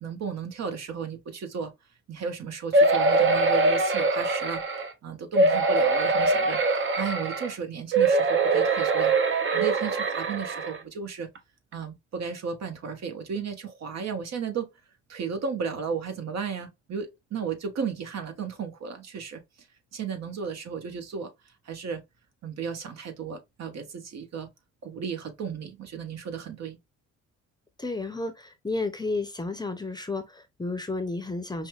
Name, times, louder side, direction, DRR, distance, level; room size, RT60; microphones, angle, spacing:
voice 1, 0.0-1.7 2.1-4.6 5.0-9.1 9.5-11.3 11.7-14.7 15.1-19.4 19.9-21.3 21.6-22.0 22.4-24.5 24.8-26.8, right 6 dB, 60° right, 1.3 m, -34 dB
sound 1, 2.7-4.9 5.4-7.5 7.9-10.8 11.4-11.5 11.7-11.8, right 3 dB, 40° right, 0.8 m, -23 dB
voice 2, 27.8-31.7, left 3 dB, 15° left, 0.7 m, -32 dB
5.4 x 2.2 x 3.2 m
cardioid pair, 90°, 30 cm